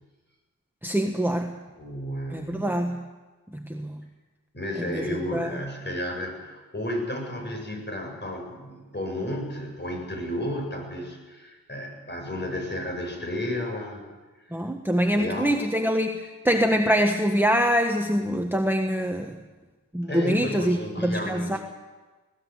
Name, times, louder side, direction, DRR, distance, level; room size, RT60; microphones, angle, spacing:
voice 1, 0.8-1.6 2.3-3.1 3.5-3.9 4.9-5.6 14.5-19.4 19.9-20.8 21.0-21.6, equal, 5° right, 3 dB, 1.5 m, -24 dB
voice 2, 1.8-2.7 4.5-14.0 15.0-15.5 20.1-21.6, left 1 dB, 30° left, 2 dB, 7.6 m, -32 dB
20.0 x 18.5 x 7.8 m, 1.3 s
wide cardioid pair, 80°, 36 cm